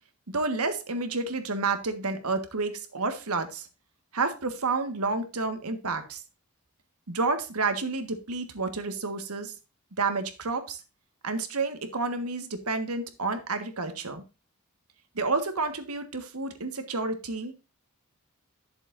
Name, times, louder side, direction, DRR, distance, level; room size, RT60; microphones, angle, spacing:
voice 1, 0.3-3.7 4.1-6.2 7.1-9.5 10.0-10.8 11.2-14.2 15.1-17.6, right 3 dB, 85° right, 1.6 m, -30 dB
11.5 x 6.9 x 2.6 m
head